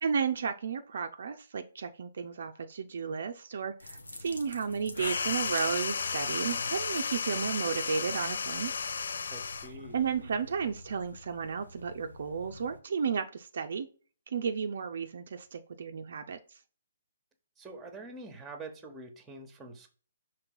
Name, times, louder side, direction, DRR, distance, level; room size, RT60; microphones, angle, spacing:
voice 1, 0.0-8.7 9.9-13.9 14.3-16.4, right 6 dB, 55° right, 7 dB, 0.5 m, -33 dB
sound 1, 3.8-12.8, left 2 dB, 80° left, 1.0 m, -48 dB
sound 2, 4.9-9.8, left 5 dB, 65° left, 0.3 m, -33 dB
voice 2, 9.3-10.0 17.6-19.9, right 2 dB, 10° right, 6 dB, 1.1 m, -45 dB
5.8 x 3.2 x 5.3 m, 0.40 s
figure-of-eight pair, 130°, 0 cm